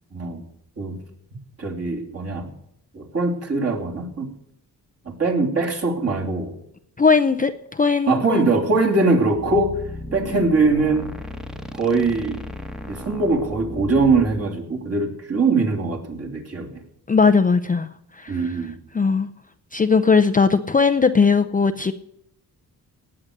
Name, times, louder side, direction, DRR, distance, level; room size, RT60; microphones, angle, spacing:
voice 1, 0.1-0.4 0.8-1.0 1.6-2.5 2.9-4.3 5.0-6.5 8.1-9.8 10.1-11.1 11.7-12.4 12.8-16.8 18.3-18.8, right 3 dB, 40° right, 0 dB, 3.0 m, -22 dB
voice 2, 7.0-8.4 10.3-10.4 17.1-17.9 18.1-18.6 18.9-19.3 19.7-21.9, left 5 dB, 20° left, 7 dB, 0.5 m, -18 dB
sound 1, 9.4-14.5, left 1 dB, ahead, 1.2 m, -35 dB
18.5 x 8.6 x 6.6 m, 0.75 s
wide cardioid pair, 145°, 38 cm